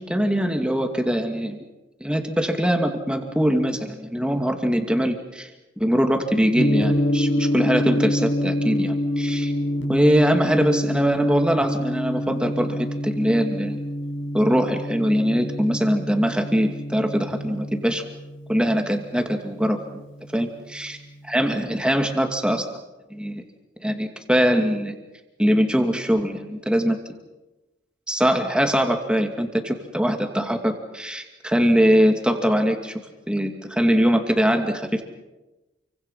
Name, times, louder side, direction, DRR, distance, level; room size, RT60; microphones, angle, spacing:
voice 1, 0.0-1.6 2.0-5.5 5.8-9.5 9.9-13.8 14.3-18.0 18.5-20.0 20.3-21.0 21.3-22.7 23.1-23.4 23.8-24.9 25.4-27.0 28.1-32.9 33.3-35.0, equal, 5° right, 4 dB, 2.5 m, -22 dB
Gong, 6.6-20.7, equal, 90° left, 6.3 m, -27 dB
29.0 x 24.5 x 5.7 m, 1.0 s
head